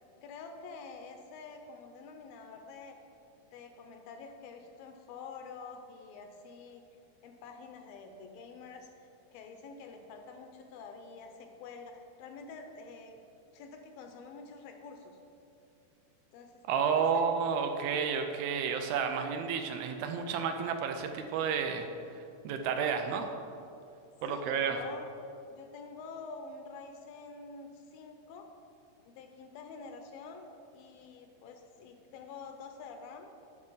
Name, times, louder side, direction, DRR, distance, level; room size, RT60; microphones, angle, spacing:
voice 1, 0.2-3.0 3.5-6.8 7.2-13.2 13.5-15.2 16.3-16.6 16.9-17.2 24.3-25.1 25.5-28.5 29.1-33.3, left 4 dB, 80° left, 5 dB, 2.3 m, -47 dB
voice 2, 16.7-21.9 22.1-23.3 24.2-24.8, right 6 dB, 80° right, 5 dB, 2.3 m, -31 dB
9.6 x 6.5 x 5.4 m, 2.6 s
omnidirectional pair, 4.5 m